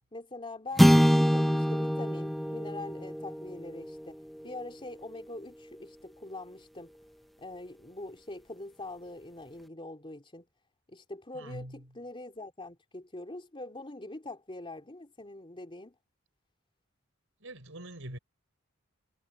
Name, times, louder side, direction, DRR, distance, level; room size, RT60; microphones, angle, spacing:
voice 1, 0.1-4.2 4.4-6.9 7.4-10.4 10.9-15.9, left 2 dB, 25° left, 3.2 m, -43 dB
sound 1, 0.8-5.3, equal, ahead, 0.9 m, -26 dB
voice 2, 11.3-11.8 17.4-18.2, right 1 dB, 70° right, 7.0 m, -43 dB
head